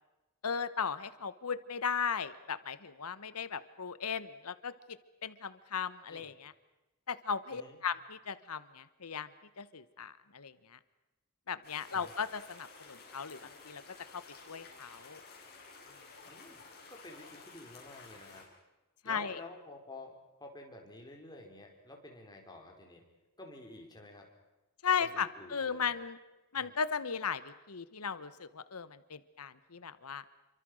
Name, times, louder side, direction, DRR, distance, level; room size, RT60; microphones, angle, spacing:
voice 1, 0.4-4.7 5.2-6.5 7.1-9.3 9.6-10.8 11.5-13.8 14.1-15.2 19.0-19.4 24.8-26.2 26.5-30.2, left 6 dB, 90° left, 14 dB, 1.2 m, -37 dB
sound 1, 11.6-18.4, left 4 dB, 45° left, 7.9 m, -53 dB
voice 2, 16.3-16.6 16.9-18.5 19.0-23.0 23.4-24.3 25.0-25.9 26.5-26.7, left 2 dB, 20° left, 2 dB, 4.9 m, -51 dB
28.0 x 25.0 x 6.5 m, 1.1 s
head